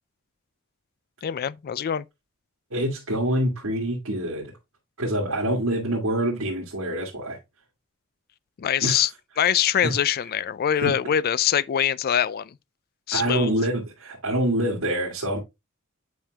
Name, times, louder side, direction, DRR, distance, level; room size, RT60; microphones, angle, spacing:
voice 1, 1.2-2.0 8.6-9.1 9.4-12.5 13.1-13.5, left 9 dB, 45° left, 0.4 m, -23 dB
voice 2, 2.7-4.5 5.0-7.4 8.8-9.0 9.8-9.9 10.8-10.9 13.1-15.4, right 1 dB, 90° right, 2.0 m, -26 dB
8.6 x 5.2 x 2.2 m
head